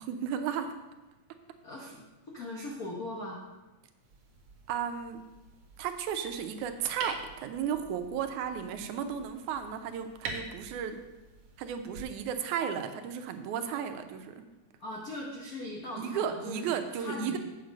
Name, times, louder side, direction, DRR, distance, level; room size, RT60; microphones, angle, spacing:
voice 1, 0.1-0.7 4.7-5.2 5.8-11.0 11.6-14.4 16.0-17.4, right 8 dB, 85° right, 7 dB, 2.2 m, -34 dB
voice 2, 1.6-3.4 14.8-17.4, left 2 dB, 65° left, -2 dB, 0.8 m, -40 dB
sound 1, 4.0-12.0, right 3 dB, 60° right, 2.0 m, -46 dB
8.1 x 7.3 x 5.2 m, 1.1 s
omnidirectional pair, 3.4 m